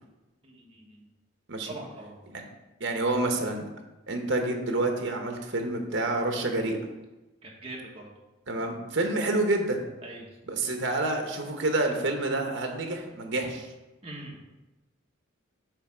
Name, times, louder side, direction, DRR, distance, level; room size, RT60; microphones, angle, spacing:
voice 1, 0.4-1.1 1.6-2.1 7.4-8.1 10.0-10.3 14.0-14.3, right 2 dB, 30° right, -2 dB, 1.4 m, -42 dB
voice 2, 2.8-3.7 4.1-6.8 8.5-9.8 10.5-13.7, right 2 dB, 60° right, 4 dB, 1.1 m, -28 dB
8.3 x 3.3 x 6.1 m, 1.0 s
head